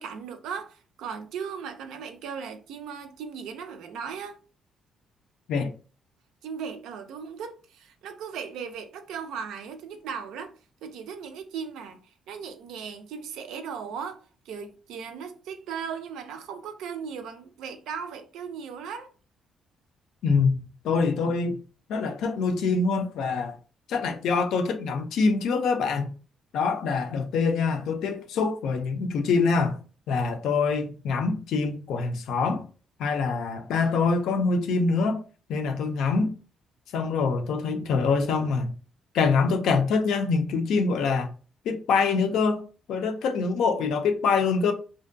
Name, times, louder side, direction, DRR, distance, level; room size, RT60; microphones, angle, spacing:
voice 1, 0.0-4.4 6.4-10.5 10.8-12.0 12.3-19.1, right 6 dB, 85° right, 0.4 m, -37 dB
voice 2, 20.2-21.6 21.9-23.5 23.9-26.1 26.5-29.8 30.1-32.6 33.0-35.2 35.5-36.3 36.9-38.7 39.1-41.3 41.7-42.6 42.9-44.7, left 4 dB, 80° left, 0.4 m, -25 dB
2.5 x 2.1 x 2.5 m
cardioid pair, 90°, 0 cm